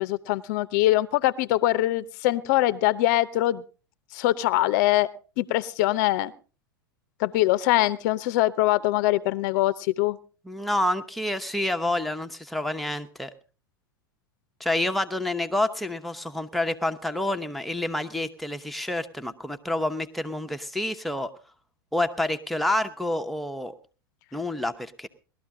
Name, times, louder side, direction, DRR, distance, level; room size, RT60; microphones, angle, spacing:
voice 1, 0.0-3.6 4.1-5.1 5.4-6.3 7.2-10.2, left 16 dB, 50° left, 16 dB, 0.7 m, -23 dB
voice 2, 10.5-13.3 14.6-21.3 21.9-23.7 24.3-25.1, left 1 dB, ahead, 5 dB, 1.0 m, -28 dB
18.5 x 12.5 x 3.7 m, 0.36 s
figure-of-eight pair, 90°, 12 cm